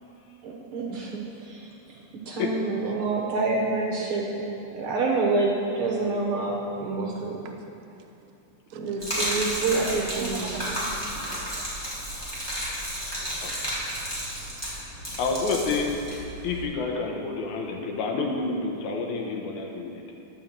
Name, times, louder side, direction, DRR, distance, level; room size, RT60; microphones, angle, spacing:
voice 1, 0.4-1.7 2.2-7.4 8.7-10.7, right 3 dB, 65° right, -2 dB, 1.4 m, -27 dB
voice 2, 8.7-9.0 9.2-9.3 9.8-11.8 16.7-16.8, right 6 dB, 85° right, 3 dB, 1.3 m, -41 dB
Gurgling / Liquid, 9.0-16.6, equal, 10° left, 1.5 m, -32 dB
voice 3, 15.2-16.0 16.4-20.0, left 4 dB, 75° left, 1 dB, 2.3 m, -29 dB
10.0 x 5.3 x 7.3 m, 2.7 s
omnidirectional pair, 3.6 m